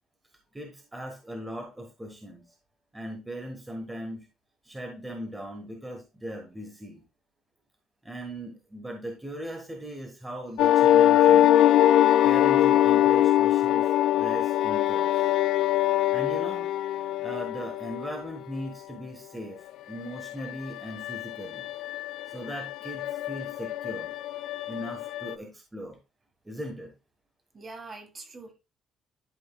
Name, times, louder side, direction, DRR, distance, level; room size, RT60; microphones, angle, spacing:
voice 1, 0.5-2.4 2.9-4.2 4.6-7.0 8.0-11.7 12.2-15.1 15.8-19.6 19.9-21.7 22.3-24.1 24.7-26.0 26.4-26.9, equal, 10° right, 1.3 m, -39 dB
sound 1, 10.6-18.1 20.1-25.4, left 12 dB, 75° left, 0.4 m, -23 dB
voice 2, 27.5-28.5, right 3 dB, 25° right, 1.7 m, -45 dB
11.5 x 5.5 x 2.3 m
cardioid pair, 165°, 0 cm